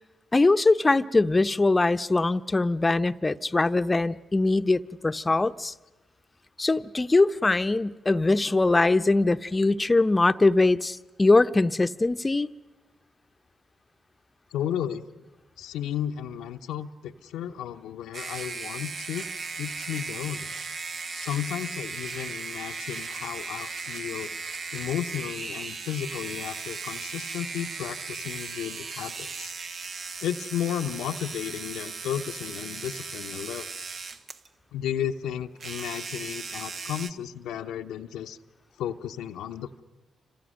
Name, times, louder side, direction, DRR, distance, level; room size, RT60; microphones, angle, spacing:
voice 1, 0.3-5.7 6.6-12.5, left 2 dB, 30° left, 0.8 m, -22 dB
voice 2, 14.5-15.1 15.6-19.2 19.6-20.5 21.1-24.3 24.7-29.5 30.2-33.7 34.7-38.4 38.8-39.8, left 10 dB, 80° left, 0.8 m, -33 dB
sound 1, 18.1-34.5 35.6-37.1, right 4 dB, 60° right, 1.2 m, -37 dB
29.5 x 26.0 x 6.5 m
hypercardioid pair, 40°, 0 cm